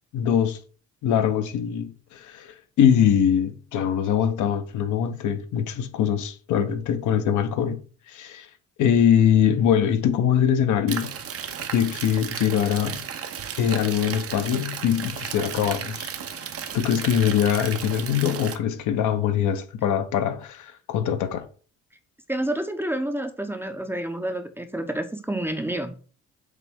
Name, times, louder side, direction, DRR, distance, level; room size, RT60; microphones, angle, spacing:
voice 1, 0.1-0.6 1.0-8.5 8.8-11.1 11.7-13.0 13.6-21.5, left 9 dB, 75° left, 0.7 m, -23 dB
sound 1, 10.9-18.6, right 8 dB, 50° right, 0.6 m, -34 dB
voice 2, 22.3-25.9, right 1 dB, 10° right, 0.5 m, -29 dB
6.6 x 2.2 x 3.4 m
cardioid pair, 90°, 30 cm